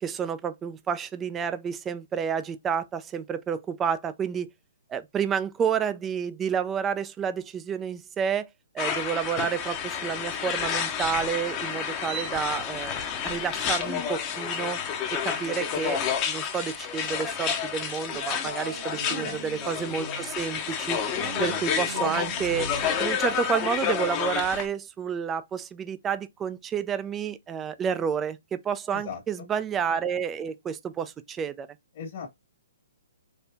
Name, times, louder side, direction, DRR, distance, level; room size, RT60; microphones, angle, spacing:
voice 1, 0.0-4.5 4.9-8.5 8.7-14.8 15.1-21.0 21.4-31.7, right 7 dB, 15° right, 0.5 m, -30 dB
sound 1, 8.8-24.7, left 7 dB, 25° left, 0.9 m, -30 dB
sound 2, 18.1-20.4 21.2-24.5, right 4 dB, 75° right, 1.4 m, -41 dB
voice 2, 19.1-19.4 28.9-29.5 31.9-32.3, left 5 dB, 45° left, 1.4 m, -37 dB
4.3 x 2.8 x 3.4 m
hypercardioid pair, 150°, 0 cm